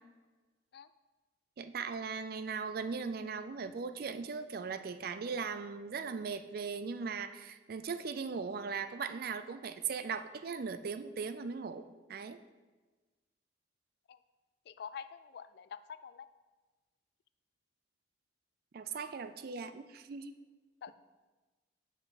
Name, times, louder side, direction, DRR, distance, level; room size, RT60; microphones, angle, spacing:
voice 1, 1.6-11.8 12.1-12.4 18.7-20.4, right 5 dB, 55° right, 11 dB, 0.4 m, -39 dB
voice 2, 14.7-16.3 20.8-20.9, left 7 dB, 60° left, 13 dB, 0.3 m, -46 dB
7.3 x 5.5 x 4.1 m, 1.3 s
head